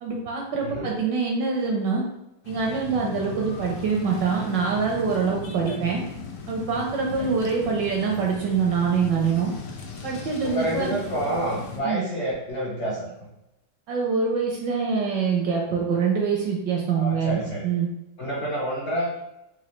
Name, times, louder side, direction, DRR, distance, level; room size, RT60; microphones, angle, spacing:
voice 1, 0.0-2.0 2.5-6.0 6.5-9.5 10.0-10.9 11.8-12.0 13.9-17.9, right 5 dB, 75° right, 0 dB, 1.0 m, -25 dB
voice 2, 0.6-0.9 5.7-5.8 7.2-7.3 10.4-13.1 16.9-17.7 18.2-19.1, right 1 dB, 75° left, -6 dB, 0.6 m, -28 dB
sound 1, 2.4-11.8, left 5 dB, 90° left, 1.6 m, -37 dB
4.1 x 2.5 x 3.0 m, 0.89 s
omnidirectional pair, 2.4 m